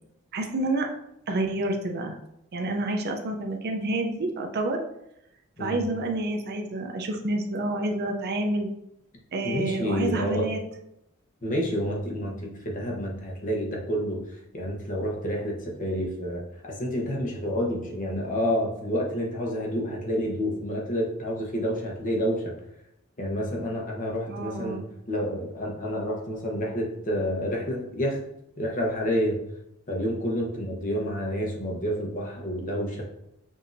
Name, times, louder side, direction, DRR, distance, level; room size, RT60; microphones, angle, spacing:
voice 1, 0.3-0.9 1.3-2.2 2.5-4.8 5.6-8.7 9.3-10.6 24.3-24.8, right 2 dB, 50° right, 3 dB, 0.5 m, -28 dB
voice 2, 9.4-10.5 11.4-14.2 14.5-22.5 23.2-24.8 25.1-28.2 28.6-29.4 29.9-33.0, equal, 40° left, -1 dB, 0.9 m, -29 dB
6.1 x 2.7 x 2.6 m, 0.80 s
head